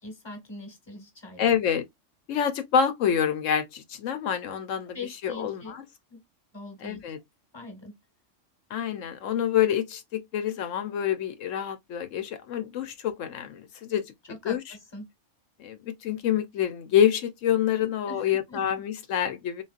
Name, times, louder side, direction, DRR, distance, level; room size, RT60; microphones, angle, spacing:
voice 1, 0.0-1.5 4.9-5.8 6.1-6.2 6.5-7.0 7.5-8.0 14.4-15.1 17.8-18.6, left 3 dB, 20° left, 1.3 m, -42 dB
voice 2, 1.4-1.8 2.3-5.0 5.2-5.8 6.8-7.2 8.7-14.1 14.4-14.6 15.6-19.6, left 9 dB, 80° left, 1.0 m, -27 dB
3.9 x 3.9 x 2.4 m
omnidirectional pair, 1.3 m